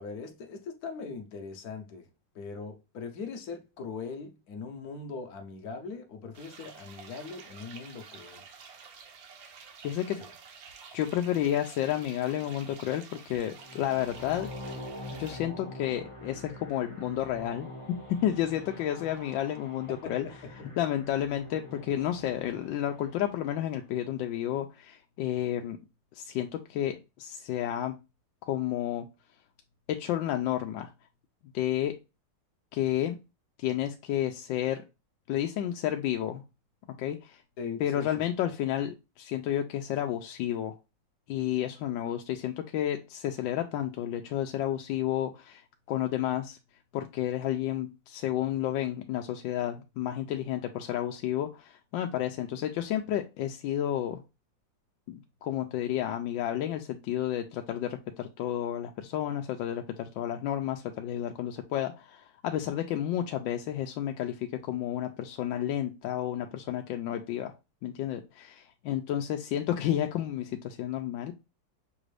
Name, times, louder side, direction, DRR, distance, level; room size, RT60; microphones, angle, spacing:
voice 1, 0.0-2.1 2.3-8.4 10.2-10.3 19.9-20.7 37.6-38.1, left 4 dB, 60° left, 1.2 m, -40 dB
sound 1, 6.3-15.4, right 5 dB, 60° right, 1.2 m, -50 dB
voice 2, 9.8-10.2 10.9-14.5 15.1-17.7 18.2-20.3 20.8-25.8 26.1-27.9 28.5-29.1 29.9-30.9 31.5-31.9 32.7-33.2 33.6-34.8 35.3-36.4 37.0-37.4 37.8-40.8 41.3-46.6 46.9-54.2 55.1-67.5 67.8-71.3, left 11 dB, 80° left, 1.3 m, -31 dB
sound 2, 13.5-23.7, left 1 dB, 25° left, 0.7 m, -45 dB
6.1 x 2.5 x 3.2 m
omnidirectional pair, 2.0 m